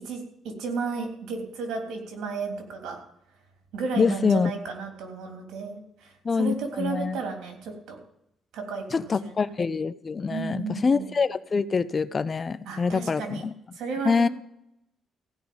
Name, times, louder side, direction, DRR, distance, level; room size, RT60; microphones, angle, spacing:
voice 1, 0.1-3.0 3.7-8.0 8.5-9.4 10.3-11.1 12.7-13.4 13.7-14.3, right 5 dB, 85° right, 3 dB, 3.4 m, -33 dB
voice 2, 4.0-4.5 6.2-7.2 8.9-13.5 14.0-14.3, left 5 dB, 35° left, 16 dB, 0.6 m, -25 dB
16.0 x 5.6 x 8.7 m, 0.79 s
cardioid pair, 90°, 0 cm